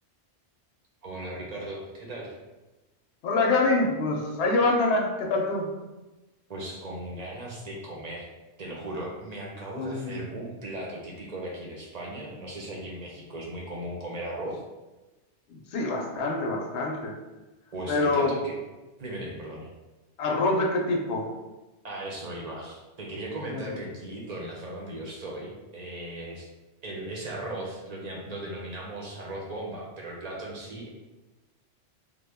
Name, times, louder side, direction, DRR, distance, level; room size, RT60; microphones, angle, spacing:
voice 1, 1.0-2.3 6.5-8.3 8.6-14.6 17.7-18.5 19.0-19.7 21.8-26.5 26.8-30.9, right 1 dB, 45° right, -2 dB, 0.6 m, -37 dB
voice 2, 3.2-5.7 9.8-10.2 15.7-17.1 17.9-18.3 20.2-21.3 23.5-23.6, left 2 dB, 75° left, 0 dB, 0.9 m, -25 dB
3.2 x 2.1 x 3.4 m, 1.1 s
omnidirectional pair, 1.2 m